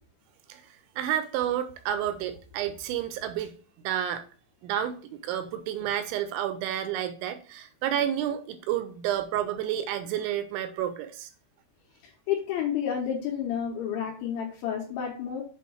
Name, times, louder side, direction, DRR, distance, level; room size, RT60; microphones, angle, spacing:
voice 1, 1.0-3.5 3.8-4.2 4.6-11.3, right 10 dB, 80° right, 10 dB, 2.8 m, -30 dB
voice 2, 12.0-15.4, left 8 dB, 75° left, -1 dB, 3.4 m, -30 dB
7.7 x 3.0 x 6.2 m, 0.40 s
omnidirectional pair, 5.5 m